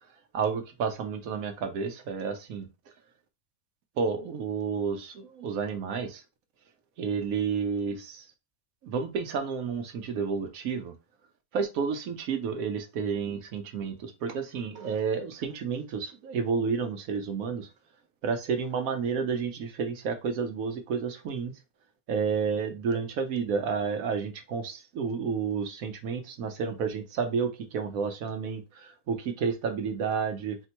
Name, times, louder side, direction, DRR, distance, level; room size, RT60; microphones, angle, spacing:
voice 1, 0.3-2.7 4.0-6.2 7.0-8.2 8.8-10.9 11.5-17.7 18.2-21.5 22.1-30.6, right 6 dB, 80° right, 1.1 m, -31 dB
4.2 x 2.1 x 2.9 m
omnidirectional pair, 1.5 m